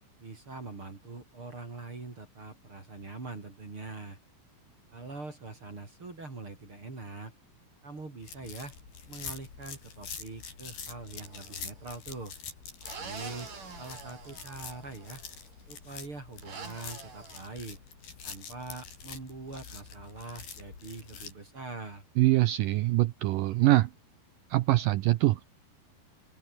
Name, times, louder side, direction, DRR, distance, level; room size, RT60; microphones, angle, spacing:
voice 1, 0.2-4.2 4.9-7.3 7.8-8.7 9.1-12.3 12.9-13.5 13.8-15.2 15.7-17.8 18.2-22.0, right 3 dB, 35° right, 5.1 m, -43 dB
sound 1, 8.2-21.3, left 6 dB, 70° left, 6.4 m, -45 dB
sound 2, 11.2-11.8 12.8-15.3 16.4-17.4, right 5 dB, 55° right, 6.8 m, -45 dB
voice 2, 22.2-23.9 24.5-25.5, right 17 dB, 75° right, 2.1 m, -24 dB
open air
omnidirectional pair, 4.5 m